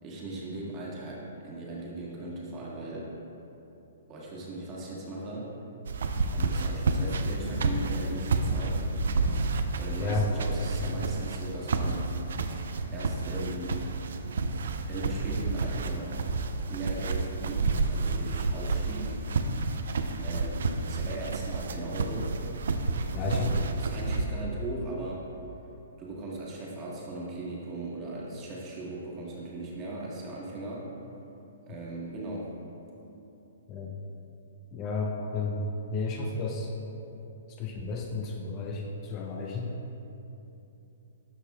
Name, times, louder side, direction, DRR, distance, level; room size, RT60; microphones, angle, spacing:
voice 1, 0.0-3.1 4.1-5.5 6.3-8.8 9.8-12.1 12.9-13.8 14.9-16.1 16.7-19.2 20.2-22.4 23.3-23.5 23.8-25.2 26.0-30.9 31.7-32.5, right 2 dB, 30° right, -4 dB, 1.3 m, -38 dB
sound 1, 5.9-24.3, right 3 dB, 75° right, 0.4 m, -30 dB
voice 2, 23.1-23.7 33.7-33.9 34.7-35.6 35.9-36.7 37.6-39.8, left 4 dB, 30° left, 0 dB, 0.5 m, -32 dB
12.5 x 4.2 x 2.3 m, 2.9 s
hypercardioid pair, 140°, 0 cm